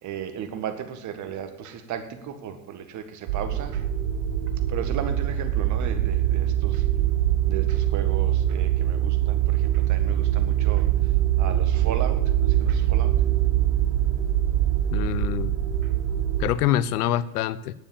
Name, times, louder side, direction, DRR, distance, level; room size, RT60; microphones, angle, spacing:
voice 1, 0.0-3.9 4.7-6.9 7.4-13.2 15.8-15.9, right 8 dB, 40° right, 8 dB, 1.8 m, -35 dB
sound 1, 3.3-16.5, right 12 dB, 65° right, 3.9 m, -23 dB
voice 2, 14.9-15.6 16.4-17.7, left 12 dB, 75° left, 17 dB, 0.8 m, -25 dB
10.0 x 9.1 x 7.2 m, 0.93 s
hypercardioid pair, 105°, 46 cm